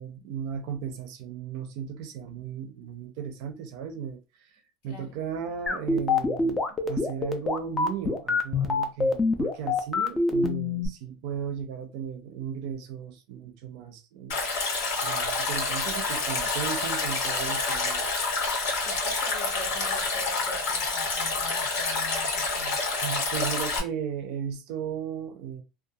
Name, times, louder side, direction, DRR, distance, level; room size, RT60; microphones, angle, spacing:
voice 1, 0.0-14.4 15.0-18.2 23.0-25.6, right 7 dB, 55° right, 0.4 m, -36 dB
sound 1, 5.7-10.9, left 3 dB, 10° left, 0.3 m, -25 dB
Stream, 14.3-23.8, left 3 dB, 75° left, 1.0 m, -28 dB
voice 2, 18.8-22.8, left 2 dB, 55° left, 0.6 m, -41 dB
2.3 x 2.2 x 2.6 m
cardioid pair, 175°, 0 cm